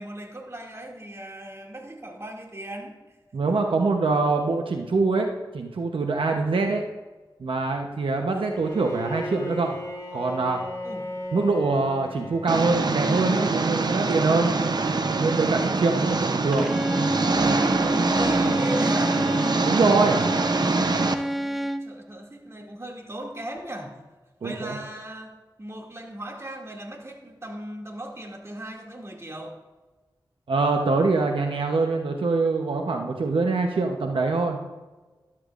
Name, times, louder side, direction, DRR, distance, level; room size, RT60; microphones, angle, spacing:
voice 1, 0.0-3.0 3.4-3.6 10.8-11.1 17.8-19.2 21.3-24.0 24.4-29.6, right 1 dB, 30° right, 0 dB, 2.4 m, -37 dB
voice 2, 3.3-5.3 5.5-6.8 7.4-9.8 10.1-10.6 11.3-14.5 15.1-16.8 19.6-20.2 24.4-24.7 30.5-34.6, right 3 dB, 90° right, 3 dB, 0.9 m, -24 dB
Bowed string instrument, 8.5-13.9, equal, 40° left, 2.2 m, -37 dB
Engine, 12.5-21.1, right 3 dB, 55° right, 0.7 m, -24 dB
Bowed string instrument 2, 16.5-22.0, equal, ahead, 0.6 m, -28 dB
13.0 x 12.5 x 2.5 m, 1.2 s
cardioid pair, 50°, 9 cm